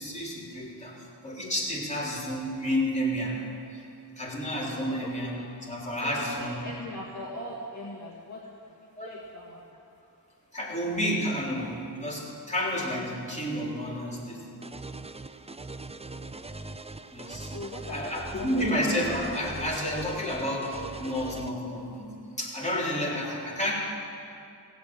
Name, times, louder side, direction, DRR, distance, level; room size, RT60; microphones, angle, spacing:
voice 1, 0.0-3.4 3.7-3.8 4.2-6.6 9.0-9.1 10.5-14.4 17.1-17.5 17.9-22.1 22.4-23.7, equal, 15° left, -5 dB, 3.7 m, -30 dB
voice 2, 6.0-8.4 8.8-9.7 15.9-16.6 17.0-17.1 17.5-18.6, left 1 dB, 40° left, -5 dB, 1.9 m, -41 dB
sound 1, 14.6-21.5, right 3 dB, 15° right, 0.5 m, -41 dB
17.0 x 8.2 x 7.7 m, 2.6 s
wide cardioid pair, 55°, 41 cm